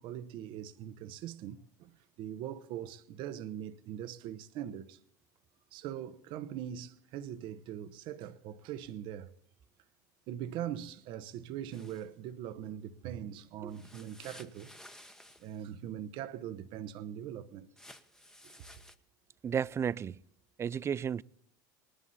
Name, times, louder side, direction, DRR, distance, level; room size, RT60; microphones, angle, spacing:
voice 1, 0.0-5.0 5.7-9.3 10.3-14.8 15.4-17.7 18.4-18.5, right 10 dB, 55° right, 1.0 m, -41 dB
sound 1, 11.7-12.1 13.7-15.6 17.8-18.9, left 1 dB, 5° left, 1.2 m, -54 dB
voice 2, 19.4-20.2 20.6-21.2, right 8 dB, 25° right, 0.4 m, -32 dB
19.5 x 11.5 x 4.1 m
hypercardioid pair, 95°, 10 cm